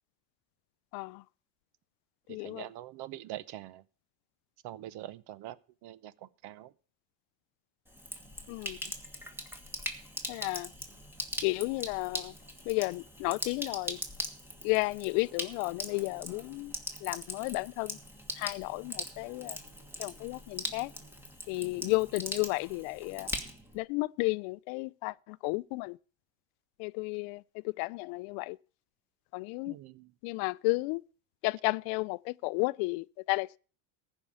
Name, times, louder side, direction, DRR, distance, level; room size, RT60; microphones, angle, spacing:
voice 1, 0.9-1.2 2.3-2.6 8.5-8.8 10.3-10.7 11.4-12.3 12.7-14.0 14.6-16.7 17.0-18.0 18.4-19.6 20.0-20.9 21.5-23.3 23.7-26.0 26.8-28.6 29.3-29.8 30.2-31.0 31.4-33.6, left 26 dB, 75° left, 0.6 m, -33 dB
voice 2, 2.3-3.8 4.6-6.7 29.7-30.1, right 13 dB, 55° right, 0.8 m, -44 dB
Sink (filling or washing), 7.9-23.8, equal, 5° right, 1.5 m, -41 dB
14.5 x 5.5 x 8.5 m
cardioid pair, 130°, 49 cm